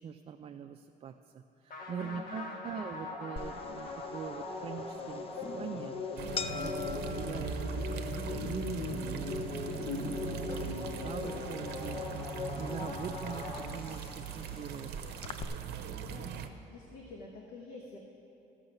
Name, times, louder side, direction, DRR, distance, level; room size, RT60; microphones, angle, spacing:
voice 1, 0.0-6.2 6.5-10.4 10.7-15.2 16.0-16.4, right 7 dB, 35° right, 5 dB, 0.3 m, -43 dB
sound 1, 1.7-14.2, left 3 dB, 55° left, 1.5 m, -40 dB
voice 2, 2.0-2.6 9.6-10.4 12.7-13.0 16.0-16.3 16.7-18.0, left 3 dB, 85° left, 0 dB, 1.1 m, -48 dB
sound 2, 3.4-15.4, left 6 dB, 35° left, 0.4 m, -46 dB
sound 3, 6.2-16.5, right 6 dB, 75° right, 0.7 m, -40 dB
13.5 x 6.4 x 5.9 m, 2.9 s
cardioid pair, 110°, 17 cm